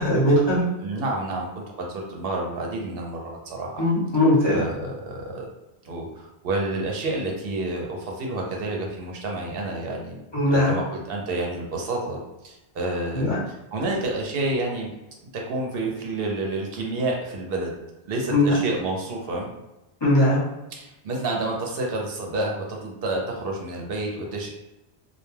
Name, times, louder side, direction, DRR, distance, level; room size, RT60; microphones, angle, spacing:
voice 1, 0.0-0.7 3.8-4.6 10.3-10.7 13.1-13.4 18.3-18.5 20.0-20.4, left 1 dB, 25° left, -7 dB, 0.7 m, -19 dB
voice 2, 0.8-3.8 4.5-5.5 5.8-10.2 10.5-14.9 15.3-17.7 18.1-19.5 20.7-24.5, right 2 dB, 65° right, 0 dB, 0.7 m, -29 dB
2.2 x 2.1 x 3.1 m, 0.98 s
omnidirectional pair, 1.1 m